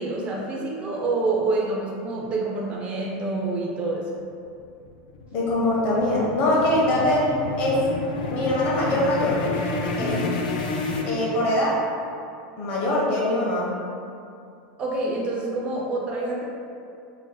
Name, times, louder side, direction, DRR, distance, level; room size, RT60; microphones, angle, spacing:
voice 1, 0.0-4.1 10.0-10.3 14.8-16.5, right 2 dB, 25° right, -2 dB, 0.3 m, -27 dB
sound 1, 4.6-11.8, left 3 dB, 85° left, 0.4 m, -29 dB
voice 2, 5.3-7.3 7.6-7.8 8.3-9.4 10.0-10.1 11.1-11.8 12.6-13.8, left 1 dB, 40° left, -5 dB, 0.7 m, -23 dB
2.6 x 2.1 x 3.8 m, 2.5 s
supercardioid pair, 165°, 5 cm